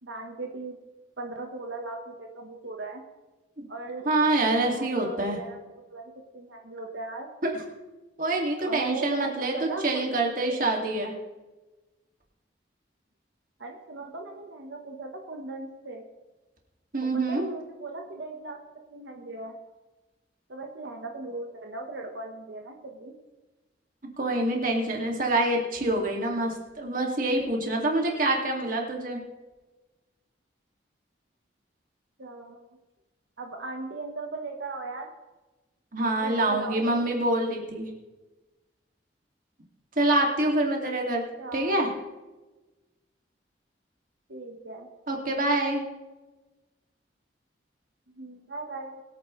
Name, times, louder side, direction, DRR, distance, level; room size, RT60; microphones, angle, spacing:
voice 1, 0.0-0.8 1.2-3.0 3.7-4.1 4.6-5.6 5.9-7.3 8.6-10.7 13.6-16.0 17.1-18.6 18.9-19.6 20.5-23.1 32.2-32.6 33.4-35.1 36.2-37.1 41.0-41.8 44.3-44.9 48.2-49.0, right 3 dB, 90° right, 2 dB, 1.3 m, -38 dB
voice 2, 4.0-5.4 7.4-7.5 8.2-11.1 16.9-17.5 24.2-29.2 35.9-37.9 40.0-41.2 41.5-41.9 45.1-45.8, right 2 dB, 50° right, 0 dB, 2.5 m, -26 dB
22.5 x 9.0 x 3.3 m, 1.2 s
head